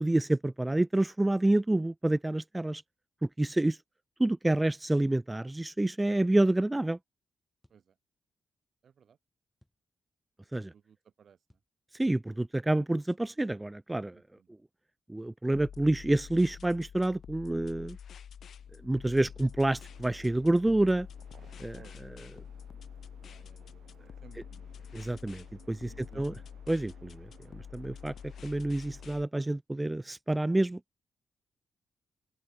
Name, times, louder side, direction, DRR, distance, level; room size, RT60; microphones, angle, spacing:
voice 1, 0.0-2.8 3.2-3.8 4.2-7.0 10.5-10.7 12.0-14.2 15.1-18.0 18.8-21.1 21.6-22.3 24.9-26.3 26.7-27.3 27.5-28.1 28.4-30.8, right 1 dB, 15° right, 0.4 m, -28 dB
sound 1, 5.6-5.8 7.6-7.9 9.6-9.8 11.5-11.8 13.5-13.8, left 1 dB, 5° left, 6.5 m, -67 dB
voice 2, 8.8-9.2 10.7-11.4 14.1-14.5 21.7-22.0 23.2-23.9 24.2-24.7 25.9-26.4, right 7 dB, 60° right, 2.4 m, -58 dB
sound 2, 15.5-29.2, left 8 dB, 70° left, 1.9 m, -47 dB
sound 3, 18.2-29.2, right 10 dB, 85° right, 4.9 m, -61 dB
open air
cardioid pair, 105°, 0 cm